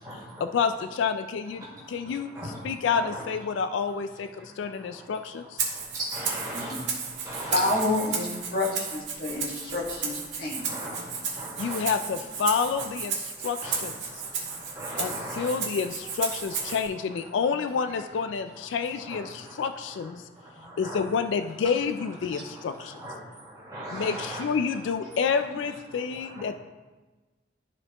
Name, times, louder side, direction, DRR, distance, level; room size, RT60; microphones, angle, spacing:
voice 1, 0.4-5.4 11.6-13.9 15.0-20.2 20.8-23.0 23.9-26.5, left 6 dB, 85° left, 10 dB, 0.3 m, -29 dB
voice 2, 2.9-3.2 6.0-6.7 7.2-7.5 10.7-11.0 11.4-11.8 13.6-13.8 14.5-15.5 19.4-19.6 20.6-21.0 22.3-22.4 23.0-23.1 23.4-24.4, right 1 dB, 20° right, -5 dB, 1.7 m, -37 dB
Rattle (instrument), 5.6-16.9, right 5 dB, 80° right, 1.5 m, -34 dB
voice 3, 7.5-10.8, left 2 dB, 55° left, -3 dB, 1.7 m, -29 dB
12.5 x 4.3 x 2.9 m, 1.2 s
head